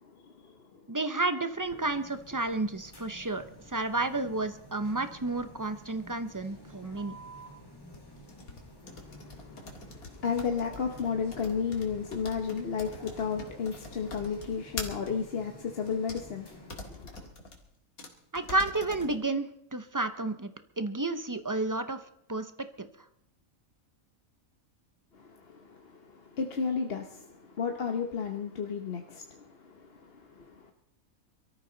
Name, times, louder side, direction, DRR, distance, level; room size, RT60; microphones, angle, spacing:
voice 1, 0.0-0.9 8.8-17.3 25.1-30.7, left 6 dB, 45° left, 4 dB, 1.2 m, -34 dB
voice 2, 0.9-7.1 18.3-22.0 22.3-22.5 22.8-22.9, right 2 dB, 25° right, 10 dB, 0.5 m, -31 dB
sound 1, 1.5-17.1, equal, 15° left, 2.2 m, -51 dB
sound 2, 7.9-15.1 15.9-16.2 16.7-17.6 18.0-18.1 18.3-19.2, left 3 dB, 80° left, 2.5 m, -43 dB
23.5 x 13.5 x 3.9 m, 0.73 s
omnidirectional pair, 1.5 m